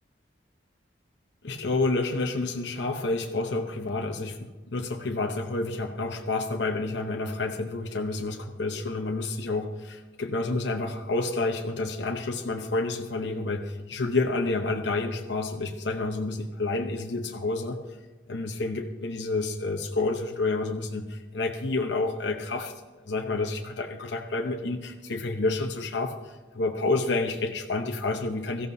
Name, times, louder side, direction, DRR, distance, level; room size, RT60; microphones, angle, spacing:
voice 1, 1.4-17.8 18.3-28.7, left 3 dB, 70° left, 3 dB, 0.9 m, -29 dB
17.0 x 14.0 x 2.7 m, 1.2 s
head